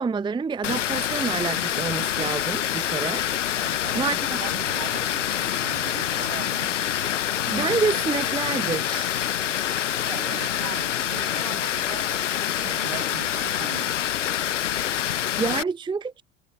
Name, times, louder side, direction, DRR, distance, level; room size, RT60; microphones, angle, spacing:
voice 1, 0.0-3.2 4.0-4.4 7.5-9.2 15.4-16.2, right 5 dB, 15° right, 0.7 m, -27 dB
Water, 0.6-15.6, left 11 dB, 75° left, 0.9 m, -26 dB
voice 2, 3.6-7.3 10.0-14.3, right 20 dB, 65° right, 6.6 m, -41 dB
figure-of-eight pair, 65°, 37 cm